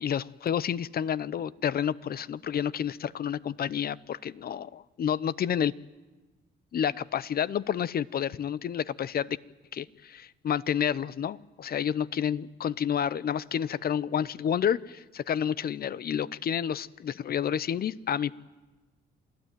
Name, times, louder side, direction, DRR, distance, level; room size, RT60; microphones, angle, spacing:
voice 1, 0.0-5.7 6.7-9.4 9.7-18.4, left 9 dB, 50° left, 19 dB, 0.7 m, -30 dB
27.5 x 17.0 x 9.2 m, 1.2 s
cardioid pair, 90°, 20 cm